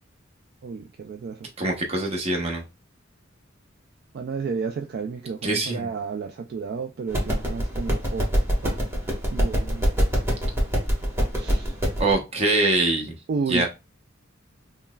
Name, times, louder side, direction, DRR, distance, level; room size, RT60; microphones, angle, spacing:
voice 1, 0.6-1.5 4.1-8.3 8.6-8.8 9.3-9.9 11.4-11.8 13.3-13.7, right 5 dB, 50° right, 0.3 m, -32 dB
voice 2, 1.6-2.6 5.4-5.9 12.0-13.1 13.5-13.7, right 2 dB, 30° right, 0.8 m, -23 dB
sound 1, 7.1-12.1, equal, 15° right, 1.2 m, -24 dB
5.4 x 2.1 x 2.3 m
head